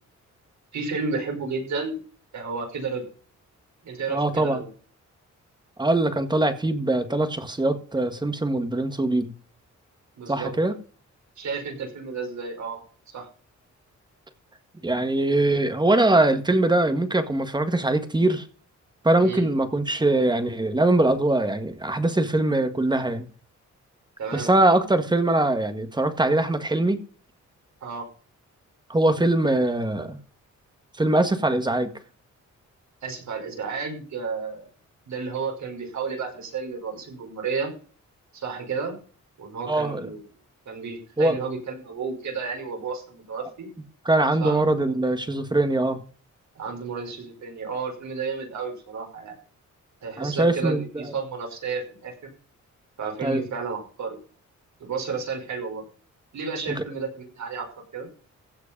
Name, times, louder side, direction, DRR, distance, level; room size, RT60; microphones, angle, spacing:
voice 1, 0.7-2.0 2.3-3.0 3.8-4.7 10.2-10.5 11.4-12.8 13.1-13.3 19.2-19.5 24.2-24.5 27.8-28.1 33.0-34.7 35.1-37.7 38.3-39.0 39.4-40.2 40.7-43.7 44.4-44.6 46.6-49.3 50.0-52.3 53.0-54.2 54.8-55.9 56.3-57.7 57.9-58.1, right 5 dB, 70° right, 5.5 m, -32 dB
voice 2, 4.1-4.6 5.8-9.3 10.3-10.7 14.8-18.5 19.0-23.2 24.3-27.0 28.9-30.2 31.0-31.9 39.7-40.1 41.2-41.4 44.0-46.0 50.2-51.1 53.2-53.4 56.8-56.9, right 2 dB, 15° right, 1.7 m, -22 dB
15.5 x 8.2 x 5.3 m
wide cardioid pair, 145°, 30 cm